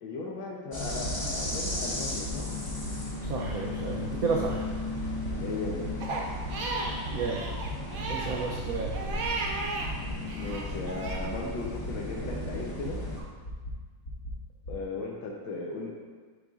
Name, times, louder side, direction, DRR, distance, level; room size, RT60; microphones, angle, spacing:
voice 1, 0.0-2.4 5.3-5.9 10.3-13.0 14.7-15.9, left 3 dB, 80° left, -2 dB, 1.5 m, -36 dB
sound 1, 0.7-13.2, left 1 dB, 25° left, 0.4 m, -35 dB
sound 2, 0.8-1.1 1.4-1.7 2.0-2.3 2.6-2.9 3.2-3.5 3.8-4.1 4.4-4.7 5.0-5.3 5.6-5.9 6.2-6.5 6.8-7.1 7.4-7.7 8.0-8.3 8.6-8.9 9.2-9.5 9.8-10.1 10.4-10.7 11.0-11.3 11.6-11.9 12.2-12.5 12.8-13.1 13.4-13.7 14.0-14.3 14.6-14.7, equal, 50° left, 1.4 m, -40 dB
voice 2, 3.2-4.7 7.1-7.4 8.1-8.9, right 4 dB, 85° right, -1 dB, 0.8 m, -31 dB
Crying sobbing, 6.0-9.9 10.3-11.3, right 3 dB, 60° right, 1.0 m, -35 dB
10.5 x 4.0 x 2.4 m, 1.5 s
omnidirectional pair, 2.2 m